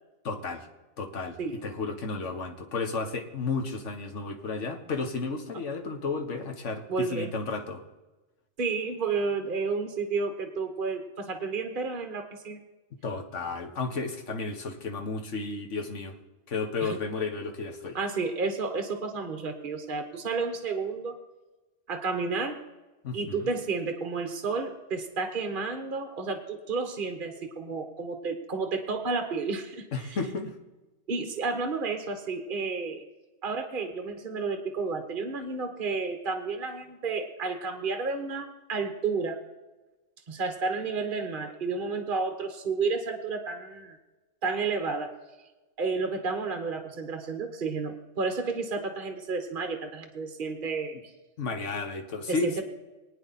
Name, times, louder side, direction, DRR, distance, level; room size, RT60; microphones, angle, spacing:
voice 1, 0.2-0.6 1.0-1.4 1.6-7.8 13.0-16.1 16.5-18.0 23.0-23.5 29.9-30.5 51.4-52.6, left 4 dB, 60° left, 4 dB, 1.8 m, -33 dB
voice 2, 6.9-7.3 8.6-12.6 16.8-16.9 17.9-21.1 21.9-22.6 23.1-30.2 31.1-33.0 33.4-39.4 40.3-44.0 44.4-45.1 45.8-51.0 52.3-52.6, right 4 dB, 40° right, 6 dB, 1.4 m, -31 dB
25.0 x 9.2 x 4.2 m, 1.2 s
omnidirectional pair, 1.4 m